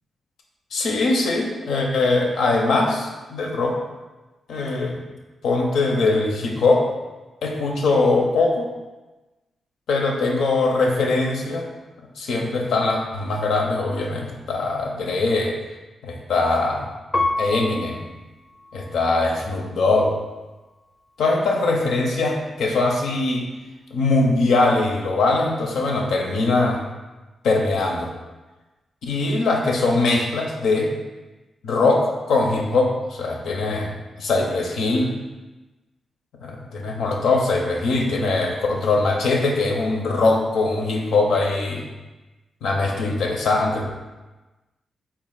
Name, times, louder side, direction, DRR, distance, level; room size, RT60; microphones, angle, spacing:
voice 1, 0.7-3.8 4.5-5.0 5.4-6.9 7.4-8.7 9.9-11.7 12.2-15.5 16.0-16.9 17.4-18.0 18.7-20.1 21.2-23.5 23.9-26.8 27.4-28.1 29.0-30.9 31.6-33.9 34.2-35.1 36.4-41.9 42.6-43.8, left 3 dB, 85° left, 0 dB, 0.5 m, -21 dB
Piano, 17.1-19.9 20.5-21.2, left 2 dB, 20° left, 0.5 m, -30 dB
3.4 x 2.4 x 3.8 m, 1.2 s
cardioid pair, 60°, 0 cm